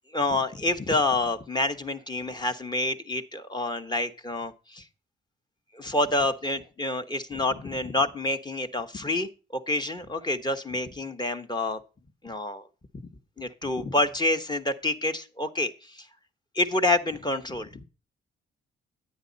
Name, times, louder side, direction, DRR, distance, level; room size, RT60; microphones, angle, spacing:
voice 1, 0.1-4.8 5.7-11.8 12.2-12.6 13.4-16.1 16.5-17.8, left 2 dB, 20° left, 8 dB, 1.3 m, -28 dB
10.0 x 9.4 x 4.1 m, 0.33 s
cardioid pair, 90°, 20 cm